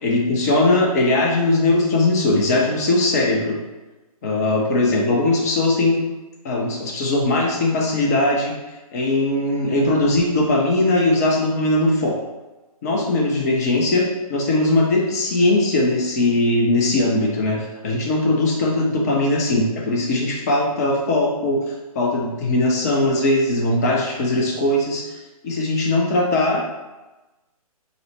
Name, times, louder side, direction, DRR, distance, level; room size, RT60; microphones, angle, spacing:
voice 1, 0.0-3.6 4.2-6.0 6.4-8.6 8.9-12.2 12.8-21.6 21.9-26.8, left 2 dB, 25° left, 0 dB, 0.5 m, -20 dB
3.8 x 2.0 x 3.2 m, 1.1 s
figure-of-eight pair, 135°, 19 cm